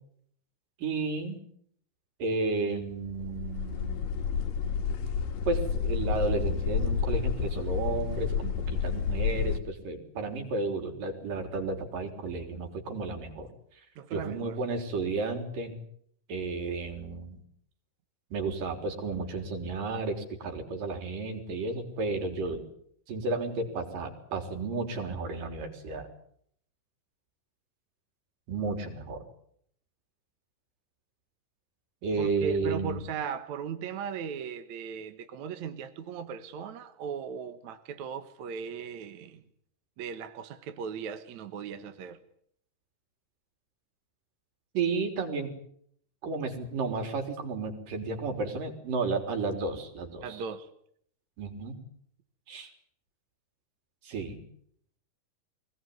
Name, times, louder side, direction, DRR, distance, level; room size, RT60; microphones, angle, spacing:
voice 1, 0.8-1.4 2.2-4.0 5.5-13.5 14.1-15.8 16.3-17.4 18.3-22.6 23.1-26.1 28.5-29.2 32.0-33.0 44.7-45.5 46.2-50.4 51.4-51.8 52.5-52.7 54.0-54.4, right 3 dB, 80° right, 5.4 m, -32 dB
sound 1, 3.0-9.6, left 6 dB, 85° left, 3.5 m, -30 dB
voice 2, 14.0-14.6 32.2-39.4 40.0-42.2 50.2-50.7, right 6 dB, 65° right, 2.5 m, -37 dB
24.0 x 20.0 x 9.4 m
omnidirectional pair, 3.8 m